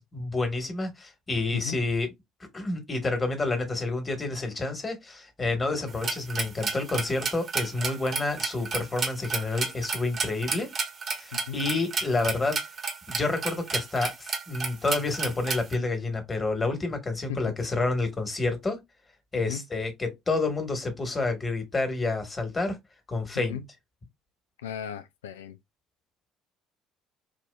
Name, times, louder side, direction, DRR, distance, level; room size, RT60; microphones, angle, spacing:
voice 1, 0.0-2.1 2.5-10.7 11.2-12.6 13.1-18.8 19.3-22.8 23.1-23.6, left 3 dB, 25° left, 1.5 m, -29 dB
sound 1, 5.9-15.7, right 4 dB, 40° right, 1.2 m, -31 dB
voice 2, 11.3-11.6 17.3-17.4 19.3-19.6 23.4-23.6 24.6-25.6, left 8 dB, 75° left, 0.3 m, -36 dB
4.8 x 2.7 x 2.3 m
figure-of-eight pair, 55°, 0 cm